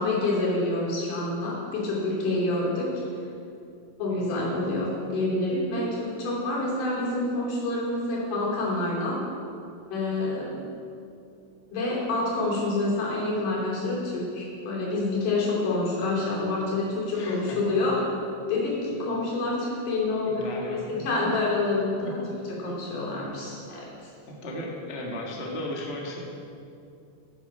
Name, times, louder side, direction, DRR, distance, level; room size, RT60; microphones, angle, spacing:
voice 1, 0.0-2.9 4.0-9.2 9.9-10.6 11.7-18.1 18.5-22.2 22.5-23.9, left 2 dB, 80° left, -5 dB, 4.6 m, -27 dB
voice 2, 4.1-4.5 17.1-17.6 20.2-21.4 22.0-22.3 22.6-22.7 24.4-26.2, equal, 30° left, -2 dB, 1.4 m, -36 dB
14.0 x 8.8 x 5.4 m, 2.6 s
omnidirectional pair, 3.6 m